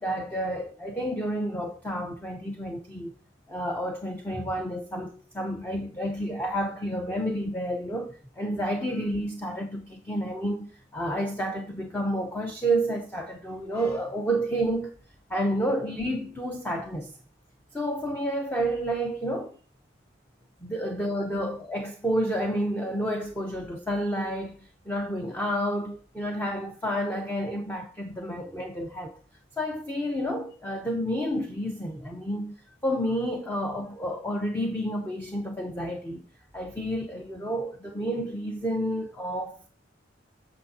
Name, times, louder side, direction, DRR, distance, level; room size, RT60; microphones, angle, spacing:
voice 1, 0.0-3.1 3.5-14.9 15.3-17.1 17.7-19.6 20.6-29.2 29.6-32.6 32.8-36.2 36.5-39.7, equal, 10° left, 0.7 m, -30 dB
8.3 x 6.4 x 2.8 m
head